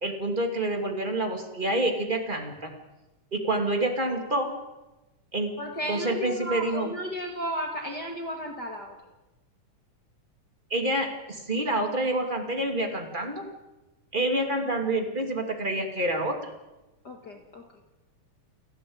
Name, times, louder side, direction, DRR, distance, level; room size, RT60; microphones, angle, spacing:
voice 1, 0.0-2.7 3.3-4.5 5.3-5.5 5.9-6.9 10.7-13.5 14.1-16.4, right 1 dB, 15° right, 3 dB, 2.4 m, -27 dB
voice 2, 5.6-8.9 17.0-17.6, equal, 40° left, 2 dB, 2.2 m, -34 dB
29.0 x 10.0 x 8.8 m, 1.0 s
omnidirectional pair, 3.4 m